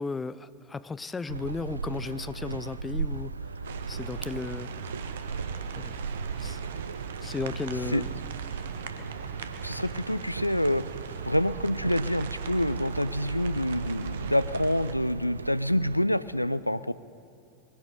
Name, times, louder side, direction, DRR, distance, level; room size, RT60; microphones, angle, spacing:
voice 1, 0.0-3.3 3.9-4.7 5.7-5.9 6.4-6.6 7.2-8.1, left 4 dB, 15° left, 16 dB, 0.4 m, -35 dB
sound 1, 1.3-16.0, right 4 dB, 75° right, 0.4 m, -37 dB
sound 2, 3.6-15.0, right 7 dB, 60° right, 0.9 m, -40 dB
voice 2, 9.6-10.8 11.2-16.9, left 1 dB, 90° left, 16 dB, 0.4 m, -27 dB
20.0 x 10.5 x 6.6 m, 2.5 s
figure-of-eight pair, 90°, 0 cm